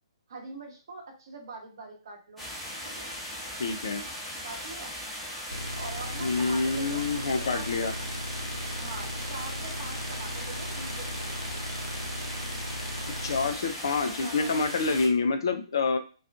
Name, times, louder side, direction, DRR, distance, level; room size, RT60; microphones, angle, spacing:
voice 1, 0.3-2.4 2.8-3.1 4.4-4.9 5.7-7.8 8.8-11.7 12.2-12.4 14.0-14.5, right 3 dB, 55° right, -1 dB, 0.9 m, -43 dB
sound 1, 2.4-15.1, equal, ahead, 0.9 m, -38 dB
voice 2, 3.6-4.0 6.2-7.9 13.2-16.0, left 4 dB, 55° left, 7 dB, 0.4 m, -27 dB
sound 2, 5.5-13.5, equal, 80° right, 0.7 m, -37 dB
2.4 x 2.3 x 2.4 m, 0.35 s
figure-of-eight pair, 125°, 3 cm